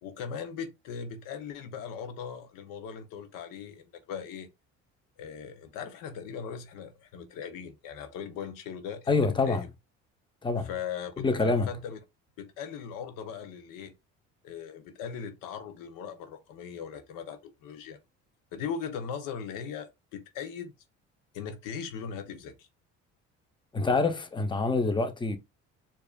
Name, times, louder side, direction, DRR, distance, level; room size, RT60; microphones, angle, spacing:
voice 1, 0.0-4.5 5.2-9.7 10.6-12.0 12.4-13.9 14.4-18.0 18.5-20.7 21.3-22.7, left 7 dB, 75° left, 0.8 m, -39 dB
voice 2, 9.1-9.7 10.4-10.7 11.2-11.7 23.7-25.4, left 3 dB, 15° left, 0.7 m, -26 dB
4.7 x 2.7 x 2.3 m
supercardioid pair, 75°, 33 cm